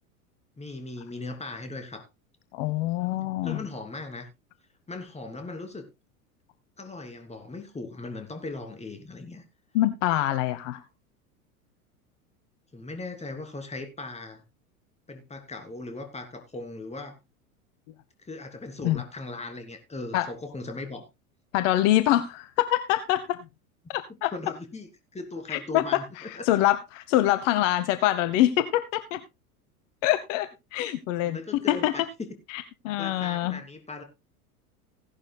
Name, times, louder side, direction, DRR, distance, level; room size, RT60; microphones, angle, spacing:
voice 1, 0.6-2.0 3.4-4.3 4.9-5.9 6.8-9.4 12.7-14.4 15.1-17.2 18.2-21.0 24.3-26.4 31.2-32.4 33.0-34.0, left 3 dB, 15° left, 3.1 m, -38 dB
voice 2, 2.5-3.6 9.7-10.8 18.8-19.0 20.1-20.3 21.5-23.4 23.9-24.3 25.5-29.2 30.0-32.1 32.5-33.6, left 14 dB, 55° left, 1.0 m, -25 dB
16.5 x 11.5 x 2.2 m
hypercardioid pair, 85°, 44 cm